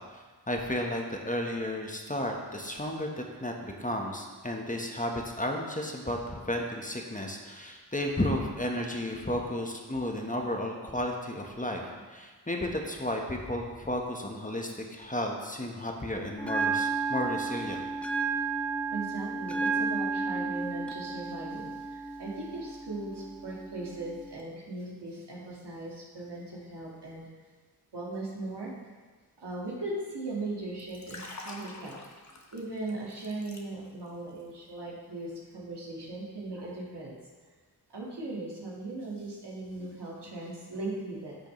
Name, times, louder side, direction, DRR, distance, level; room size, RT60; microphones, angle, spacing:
voice 1, 0.1-17.8, left 1 dB, 20° left, 1 dB, 1.2 m, -33 dB
Bell, 16.4-24.4, right 4 dB, 5° left, 0.8 m, -32 dB
voice 2, 18.9-27.2 27.9-28.7 29.4-32.0 32.5-37.1 37.9-41.5, right 2 dB, 85° right, -4 dB, 2.0 m, -38 dB
Liquid, 30.8-34.1 34.4-34.7, left 2 dB, 45° left, 1.2 m, -46 dB
10.5 x 6.6 x 3.2 m, 1.4 s
cardioid pair, 40°, 40 cm